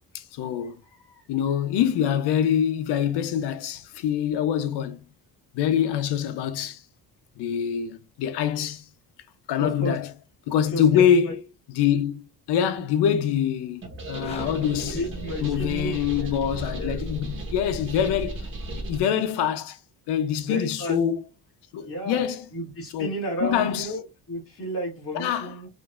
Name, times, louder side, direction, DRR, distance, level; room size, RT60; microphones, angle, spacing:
voice 1, 0.1-0.8 1.3-5.0 5.5-6.8 7.4-8.8 9.5-10.1 10.5-11.4 11.7-15.0 15.4-19.8 20.1-21.2 21.7-22.5 22.9-23.1 23.4-23.9 25.1-25.5, left 9 dB, 85° left, 0.7 m, -25 dB
voice 2, 9.6-10.0 10.7-11.3 14.6-16.3 16.8-17.0 20.4-21.0 21.8-22.2 22.5-24.0 24.3-25.7, right 1 dB, 35° left, 2.0 m, -32 dB
sound 1, 13.8-19.0, right 1 dB, 30° right, 1.2 m, -35 dB
sound 2, 14.0-16.1, left 1 dB, 15° left, 0.8 m, -43 dB
5.0 x 2.6 x 2.4 m
cardioid pair, 160°, 39 cm